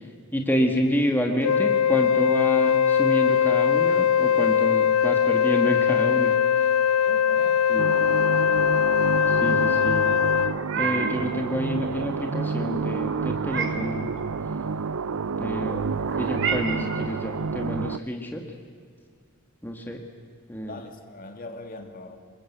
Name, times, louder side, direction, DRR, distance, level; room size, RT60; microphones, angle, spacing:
voice 1, 0.3-6.3 7.7-7.9 9.3-10.1 10.8-14.1 15.4-18.4 19.6-20.0 20.5-20.8, equal, 10° left, 2 dB, 1.8 m, -28 dB
Wind instrument woodwind instrument, 1.4-10.6, left 8 dB, 85° left, 0.6 m, -21 dB
voice 2, 7.1-7.7 20.7-22.2, left 2 dB, 40° left, 5 dB, 2.3 m, -41 dB
sound 1, 7.8-18.0, right 5 dB, 80° right, 0.6 m, -29 dB
Meow, 10.4-11.3 13.0-13.9 16.0-17.1, right 6 dB, 60° right, 2.4 m, -31 dB
27.0 x 22.0 x 8.2 m, 2.1 s
head